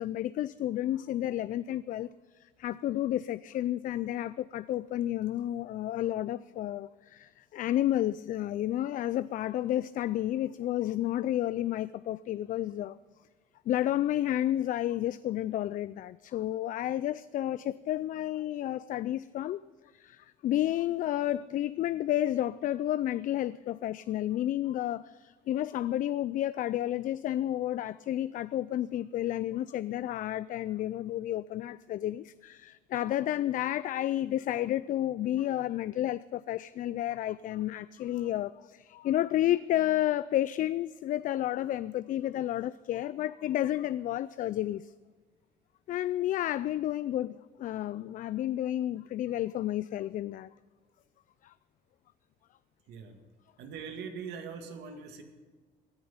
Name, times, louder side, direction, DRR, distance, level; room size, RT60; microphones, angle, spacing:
voice 1, 0.0-2.1 2.6-13.0 13.7-19.6 19.9-44.9 45.9-50.5 51.4-51.5, left 13 dB, 55° left, 0.4 m, -31 dB
voice 2, 53.6-55.2, right 6 dB, 85° right, 2.1 m, -41 dB
18.0 x 10.0 x 5.7 m
cardioid pair, 110°, 17 cm